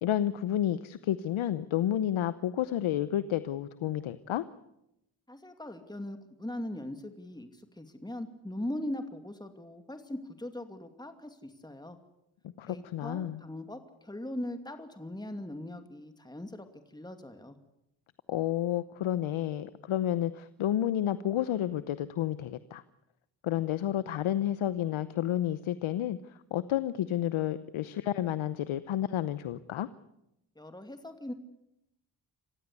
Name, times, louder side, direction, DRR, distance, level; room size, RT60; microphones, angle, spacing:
voice 1, 0.0-4.4 12.6-13.4 18.3-22.8 23.4-26.2 26.5-29.9, left 11 dB, 75° left, 15 dB, 0.9 m, -30 dB
voice 2, 5.3-12.0 12.7-17.6 30.6-31.3, left 1 dB, 10° left, 7 dB, 2.5 m, -40 dB
27.0 x 15.5 x 8.3 m, 0.84 s
supercardioid pair, 45°, 49 cm